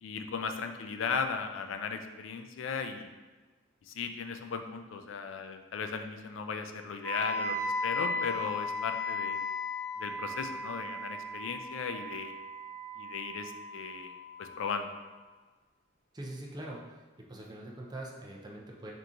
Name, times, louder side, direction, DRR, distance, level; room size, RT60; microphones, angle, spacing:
voice 1, 0.0-3.1 3.9-9.4 10.0-12.4 13.0-14.1 14.4-14.9, left 5 dB, 70° left, 7 dB, 0.4 m, -36 dB
Wind instrument woodwind instrument, 7.0-15.0, left 2 dB, 20° left, 1.0 m, -36 dB
voice 2, 16.1-16.8 17.2-18.9, right 1 dB, 20° right, -2 dB, 0.5 m, -43 dB
3.7 x 2.9 x 3.7 m, 1.3 s
head